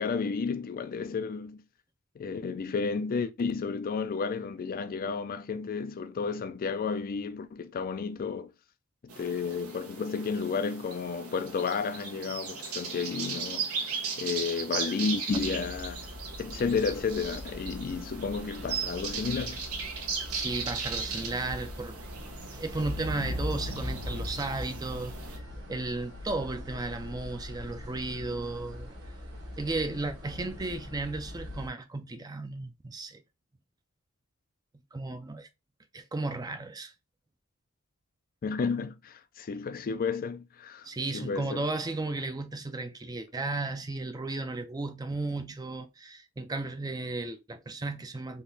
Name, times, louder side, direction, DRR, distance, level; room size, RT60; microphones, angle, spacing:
voice 1, 0.0-1.6 2.2-8.5 9.0-13.8 14.2-16.1 16.4-19.6 38.4-40.9 41.1-41.6, left 5 dB, 40° left, 0.4 m, -32 dB
sound 1, 9.1-25.4, right 5 dB, 90° right, 1.0 m, -37 dB
sound 2, 15.3-31.7, left 1 dB, 55° right, 1.1 m, -43 dB
voice 2, 20.3-22.0 22.5-25.4 25.7-28.9 29.6-33.2 34.9-35.5 35.9-36.9 40.8-48.4, right 2 dB, 20° right, 0.4 m, -34 dB
Boom, 22.8-27.1, left 1 dB, 80° left, 0.9 m, -37 dB
3.7 x 2.9 x 2.6 m
head